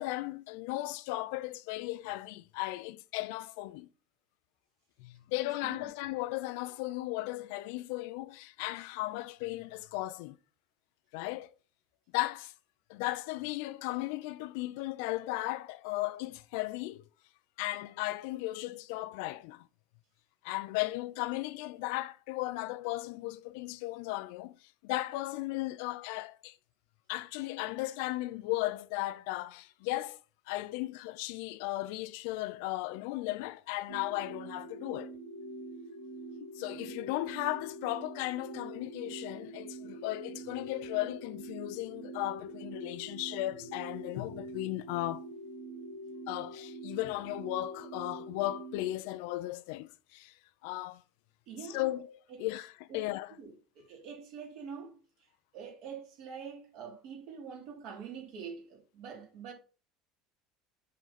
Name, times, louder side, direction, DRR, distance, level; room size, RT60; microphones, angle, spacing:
voice 1, 0.0-3.9 5.0-10.4 11.1-11.5 12.1-12.5 12.9-17.0 17.6-19.7 20.4-24.6 24.8-26.6 27.1-30.2 30.5-35.1 36.4-45.2 46.3-50.3 50.6-51.0 51.7-53.4, left 18 dB, 80° left, 0.5 m, -36 dB
sound 1, 33.9-49.0, right 2 dB, 80° right, 1.5 m, -45 dB
voice 2, 51.5-51.8 52.3-52.4 52.9-53.1 53.4-55.0 55.5-59.5, right 6 dB, 60° right, 3.3 m, -45 dB
7.4 x 3.9 x 5.8 m
cardioid pair, 155°, 0 cm